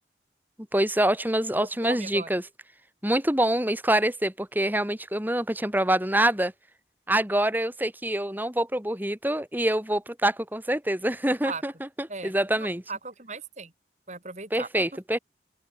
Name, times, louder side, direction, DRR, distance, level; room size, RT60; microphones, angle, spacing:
voice 1, 0.7-2.4 3.0-6.5 7.1-12.8 14.5-15.2, right 1 dB, 10° right, 4.1 m, -25 dB
voice 2, 1.6-2.3 11.2-11.6 12.1-13.7 14.1-14.8, right 3 dB, 40° right, 4.7 m, -38 dB
open air
head